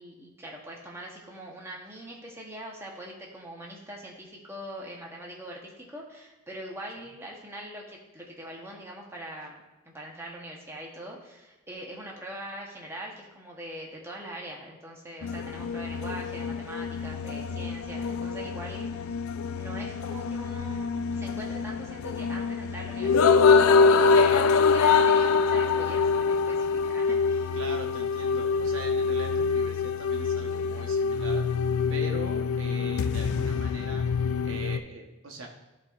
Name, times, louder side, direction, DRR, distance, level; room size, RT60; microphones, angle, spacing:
voice 1, 0.0-19.1 19.5-27.6, right 1 dB, 10° right, -2 dB, 0.9 m, -42 dB
sound 1, 15.2-34.8, left 5 dB, 85° left, 0.3 m, -25 dB
voice 2, 24.1-24.6 27.5-34.1 34.4-35.5, right 2 dB, 70° right, 1 dB, 1.0 m, -41 dB
12.0 x 4.2 x 2.4 m, 1.1 s
head